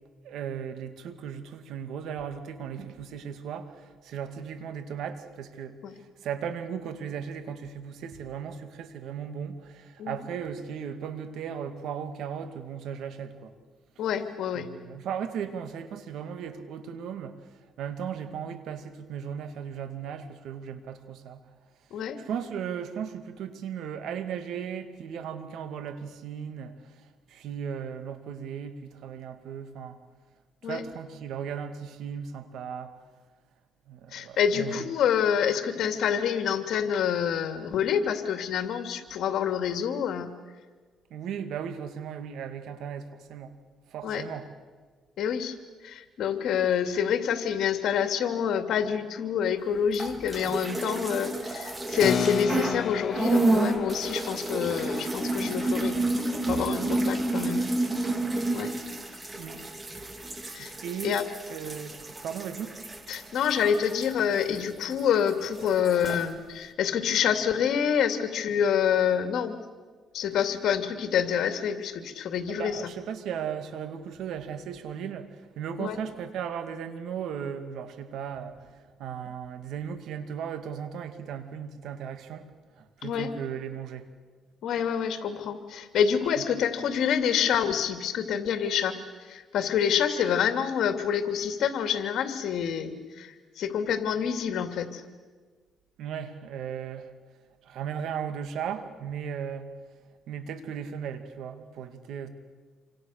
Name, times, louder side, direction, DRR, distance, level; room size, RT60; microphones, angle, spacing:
voice 1, 0.2-13.5 14.5-21.4 22.3-30.0 30.6-32.9 33.9-34.9 41.1-43.5 43.9-44.5 59.3-59.6 60.6-61.2 61.5-62.8 72.5-82.5 82.8-84.1 86.4-86.5 96.0-97.1 97.6-99.8 100.3-102.3, right 8 dB, 80° right, 9 dB, 2.3 m, -36 dB
voice 2, 14.0-14.7 21.9-22.2 30.6-30.8 34.1-40.3 44.0-44.2 45.2-45.6 45.8-56.0 56.4-57.7 58.5-58.7 60.5-60.7 61.0-61.3 63.1-69.6 70.1-72.8 75.8-76.0 83.0-83.3 84.6-95.0, left 8 dB, 75° left, 7 dB, 2.7 m, -27 dB
sound 1, 49.9-52.8 53.1-65.0 65.3-66.2, right 2 dB, 25° right, 3.5 m, -30 dB
Keyboard (musical), 52.0-58.0, left 7 dB, 55° left, 0.8 m, -35 dB
28.0 x 25.5 x 6.7 m, 1.4 s
cardioid pair, 90°, 0 cm